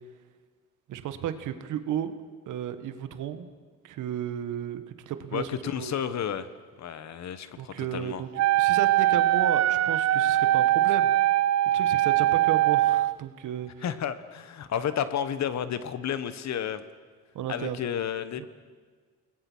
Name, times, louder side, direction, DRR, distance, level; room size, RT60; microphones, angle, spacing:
voice 1, 0.9-2.1 2.5-3.5 3.8-5.5 5.7-5.9 7.6-8.3 8.6-11.1 11.6-13.8 17.3-17.8 18.4-18.5, right 10 dB, 85° right, 10 dB, 1.7 m, -33 dB
voice 2, 5.3-6.5 6.8-8.2 13.8-16.8 17.5-18.5, left 9 dB, 65° left, 12 dB, 1.5 m, -31 dB
Wind instrument woodwind instrument, 8.3-13.1, right 13 dB, 60° right, 0.6 m, -22 dB
29.5 x 20.5 x 6.4 m, 1.5 s
cardioid pair, 90°, 30 cm